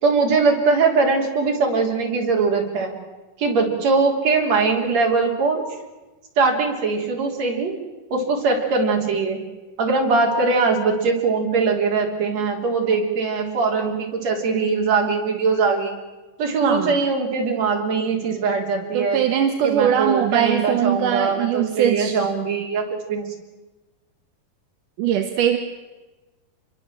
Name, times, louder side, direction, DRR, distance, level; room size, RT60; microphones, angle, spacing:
voice 1, 0.0-2.9 3.4-5.7 6.4-7.7 8.1-9.4 9.8-15.9 16.4-19.2 19.6-23.3, right 4 dB, 45° right, 1 dB, 4.4 m, -21 dB
voice 2, 16.6-17.0 18.9-22.2 25.0-25.6, right 9 dB, 65° right, 6 dB, 2.4 m, -21 dB
27.0 x 23.0 x 7.6 m, 1.2 s
omnidirectional pair, 4.5 m